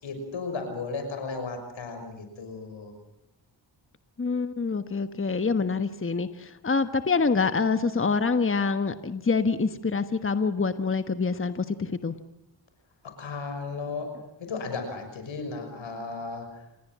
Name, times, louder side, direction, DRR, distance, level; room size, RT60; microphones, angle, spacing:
voice 1, 0.0-2.9 13.2-14.1 14.4-16.5, left 4 dB, 90° left, 6 dB, 6.2 m, -35 dB
voice 2, 4.2-12.1, left 4 dB, 30° left, 10 dB, 1.3 m, -26 dB
28.0 x 20.5 x 7.5 m, 0.85 s
cardioid pair, 65°, 45 cm